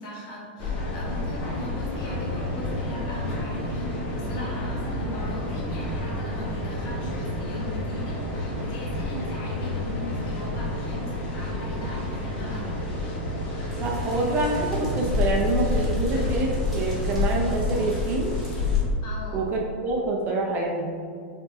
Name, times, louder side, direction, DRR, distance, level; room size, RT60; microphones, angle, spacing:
voice 1, 0.0-12.8 19.0-19.5, equal, 50° left, -4 dB, 1.5 m, -39 dB
sound 1, 0.6-18.8, left 2 dB, 35° left, 1.3 m, -29 dB
sound 2, 13.7-18.8, equal, ahead, 1.4 m, -38 dB
voice 2, 13.8-18.3 19.3-20.9, right 3 dB, 30° right, -1 dB, 0.7 m, -26 dB
4.6 x 3.7 x 2.7 m, 2.2 s
hypercardioid pair, 130°, 6 cm